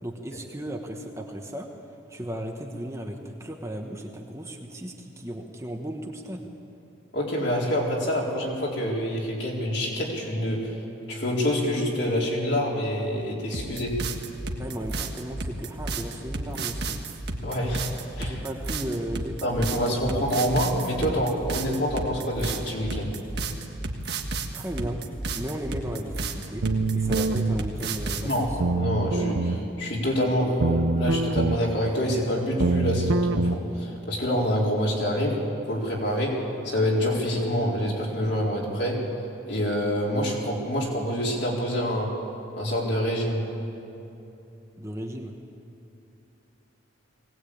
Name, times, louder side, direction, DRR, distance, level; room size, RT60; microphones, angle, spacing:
voice 1, 0.0-1.7 2.1-6.5 14.6-17.0 18.2-19.7 20.1-20.3 24.5-25.0 25.3-26.7 26.9-28.6 44.8-45.3, right 1 dB, 15° right, 2 dB, 1.2 m, -35 dB
voice 2, 7.1-10.7 11.1-14.0 17.4-17.9 18.2-18.4 19.4-23.1 28.2-39.0 39.5-42.1 42.6-43.5, equal, 60° left, -3 dB, 4.3 m, -26 dB
sound 1, 13.5-28.4, right 3 dB, 55° right, 1.6 m, -32 dB
sound 2, 26.6-27.6 28.6-29.6 30.6-31.6 32.6-33.6, right 3 dB, 85° right, 0.7 m, -24 dB
21.5 x 18.5 x 8.7 m, 2.9 s
head